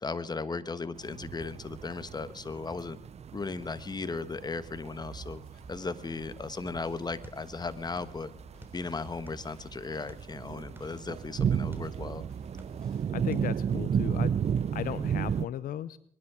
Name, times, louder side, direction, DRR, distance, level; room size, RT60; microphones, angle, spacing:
voice 1, 0.0-3.0 3.3-5.4 5.7-8.3 8.7-12.2, left 4 dB, 30° left, 13 dB, 1.3 m, -36 dB
sound 1, 1.0-15.5, right 8 dB, 45° right, 0.5 m, -34 dB
sound 2, 5.0-13.0, right 1 dB, 5° left, 8.0 m, -54 dB
sound 3, 7.2-8.2 8.4-9.6 10.1-11.9 12.4-13.0 13.3-13.5, right 1 dB, 15° right, 3.3 m, -51 dB
voice 2, 13.1-14.3 14.7-16.0, left 11 dB, 75° left, 16 dB, 0.7 m, -36 dB
23.5 x 11.0 x 4.9 m, 0.64 s
supercardioid pair, 65°, 15 cm